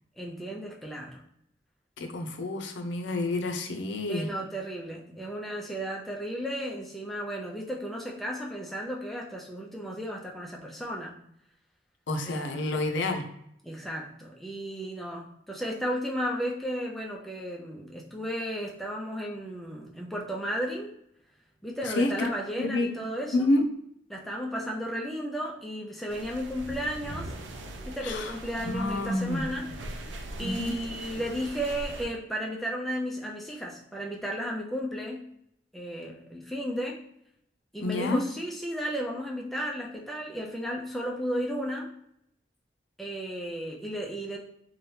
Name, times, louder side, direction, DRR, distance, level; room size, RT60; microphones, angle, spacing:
voice 1, 0.2-1.2 4.1-11.2 12.2-12.9 13.6-20.9 21.6-23.5 24.1-27.3 27.9-30.0 30.4-35.2 35.7-37.0 37.7-41.9 43.0-44.4, equal, ahead, -2 dB, 0.4 m, -34 dB
voice 2, 2.0-4.3 12.1-13.3 21.8-22.3 22.6-23.6 28.0-28.3 28.6-29.5 30.4-30.8 37.8-38.2, left 2 dB, 80° left, 5 dB, 0.5 m, -29 dB
sound 1, 26.1-32.1, right 1 dB, 85° right, 0.4 m, -41 dB
2.8 x 2.2 x 3.2 m, 0.73 s
head